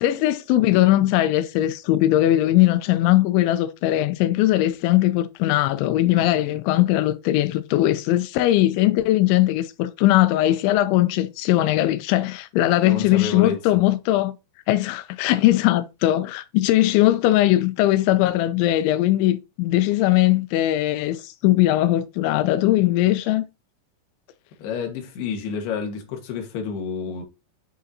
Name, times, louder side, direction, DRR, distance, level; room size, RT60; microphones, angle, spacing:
voice 1, 0.0-14.4 14.7-23.4, left 15 dB, 90° left, 2.6 m, -20 dB
voice 2, 12.8-13.6 24.6-27.2, left 6 dB, 65° left, 2.9 m, -29 dB
8.5 x 6.0 x 2.8 m
omnidirectional pair, 5.9 m